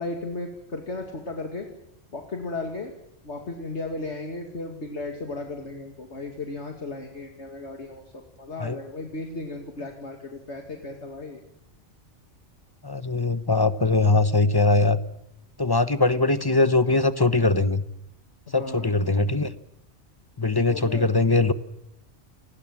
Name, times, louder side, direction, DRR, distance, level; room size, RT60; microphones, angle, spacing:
voice 1, 0.0-1.7 2.1-2.9 3.2-11.4 18.5-19.0 20.7-21.1, left 2 dB, 75° left, 3 dB, 2.7 m, -35 dB
voice 2, 12.8-15.0 15.6-17.8 18.5-19.5 20.4-21.5, left 3 dB, 20° left, 13 dB, 1.0 m, -21 dB
28.5 x 20.0 x 7.4 m, 0.82 s
omnidirectional pair, 1.2 m